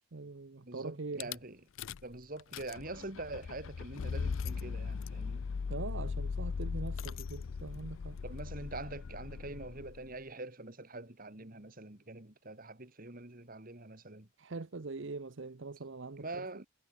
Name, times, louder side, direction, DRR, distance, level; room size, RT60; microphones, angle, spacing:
voice 1, 0.0-1.3 5.7-8.2 14.4-16.5, right 3 dB, 60° right, 0.8 m, -42 dB
voice 2, 0.7-1.6 2.0-5.5 8.2-14.3 16.2-16.7, right 2 dB, 45° right, 2.2 m, -44 dB
Rattle / Car / Engine starting, 1.2-1.4 1.8-2.1 2.4-10.1, left 5 dB, 70° left, 0.5 m, -39 dB
head